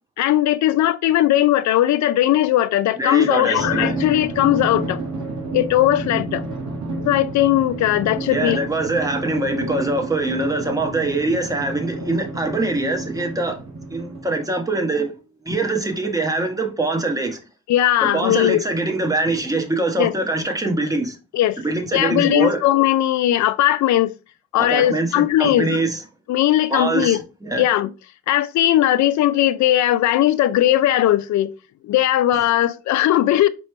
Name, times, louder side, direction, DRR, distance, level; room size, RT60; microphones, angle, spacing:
voice 1, 0.2-5.0 5.5-6.4 7.1-8.6 17.7-18.7 20.0-20.1 21.3-21.6 21.9-24.1 24.5-25.8 26.3-27.2 27.6-27.9 28.3-31.6 31.8-33.5, left 13 dB, 70° left, 0.5 m, -18 dB
voice 2, 3.0-4.0 8.3-13.6 13.9-15.1 15.4-17.4 18.0-21.2 21.6-22.6 24.6-26.0 26.7-27.6, right 2 dB, 10° right, 1.1 m, -23 dB
Drum, 3.6-14.6, right 2 dB, 75° right, 1.3 m, -30 dB
4.4 x 3.1 x 3.2 m
cardioid pair, 90°, 30 cm